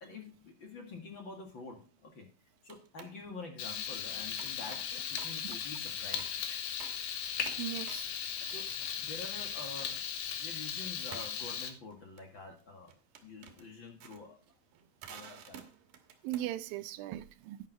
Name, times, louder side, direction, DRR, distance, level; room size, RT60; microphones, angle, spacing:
voice 1, 0.0-2.3 2.6-6.4 8.5-10.1 10.4-12.9 13.2-14.4 15.1-15.6, left 3 dB, 40° left, 2.2 m, -47 dB
sound 1, 1.8-2.1 2.6-3.2 4.4-5.5 5.9-6.4 6.8-7.1 7.4-9.3 9.6-10.1 11.1-16.7, right 8 dB, 70° right, 2.9 m, -52 dB
Frying (food), 3.6-11.7, left 8 dB, 85° left, 3.0 m, -37 dB
voice 2, 7.6-8.1 8.4-8.6 16.2-17.6, right 13 dB, 85° right, 2.5 m, -38 dB
11.0 x 9.3 x 4.0 m
omnidirectional pair, 4.0 m